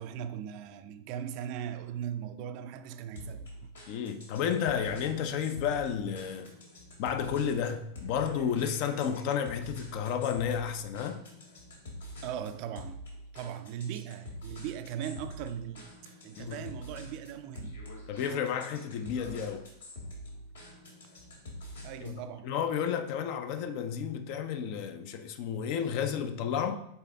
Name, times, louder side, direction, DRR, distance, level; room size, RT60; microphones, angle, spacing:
voice 1, 0.0-3.7 12.2-13.0 13.3-15.9 16.2-17.8 21.8-22.5, right 9 dB, 45° right, 0.4 m, -39 dB
sound 1, 3.2-22.2, equal, 70° left, 2.0 m, -46 dB
voice 2, 3.9-6.5 7.0-11.2 16.4-16.6 18.1-19.6 22.0-22.2 22.4-26.8, left 8 dB, 45° left, 0.5 m, -32 dB
7.0 x 4.1 x 3.4 m
figure-of-eight pair, 90°, 0 cm